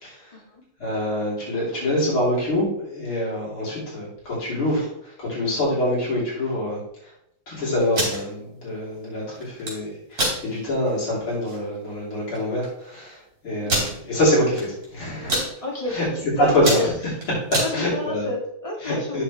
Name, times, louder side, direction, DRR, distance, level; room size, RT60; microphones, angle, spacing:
voice 1, 0.0-0.3 0.8-7.1 7.5-15.5 15.9-16.1 16.5-16.9 17.5-18.3 18.8-19.2, left 1 dB, 70° left, -7 dB, 4.4 m, -25 dB
sound 1, 7.8-8.2 9.4-9.7 10.1-10.4 10.9-11.0 11.3-11.6 12.4-12.5 12.6-12.7 13.7-13.9 14.5-14.9 15.1-15.5 16.0-16.2 16.5-17.7, right 1 dB, 40° right, 3.2 m, -24 dB
voice 2, 13.5-14.1 15.6-16.9 17.6-19.2, left 1 dB, 15° left, -2 dB, 1.4 m, -31 dB
9.0 x 6.4 x 3.3 m, 0.76 s
omnidirectional pair, 2.4 m